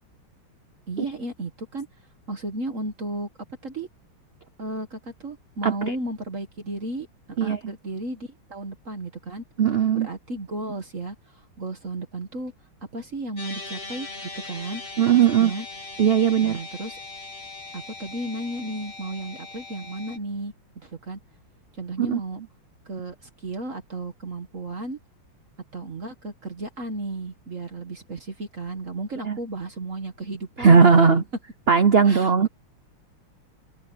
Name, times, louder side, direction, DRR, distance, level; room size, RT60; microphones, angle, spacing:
voice 1, 0.9-1.9 2.3-3.3 3.6-3.9 4.6-9.4 9.9-12.5 12.9-14.1 14.4-14.8 15.4-15.7 16.4-17.0 17.7-21.2 21.7-22.4 22.9-25.0 25.7-31.1 32.0-32.5, right 2 dB, 40° right, 1.8 m, -34 dB
voice 2, 5.6-5.9 7.4-7.6 9.6-10.1 15.0-15.5 16.0-16.6 22.0-22.2 29.3-29.4 30.6-31.2 31.7-32.5, right 6 dB, 75° right, 0.5 m, -18 dB
sound 1, 13.4-20.2, left 3 dB, 30° left, 1.9 m, -39 dB
omnidirectional pair, 2.2 m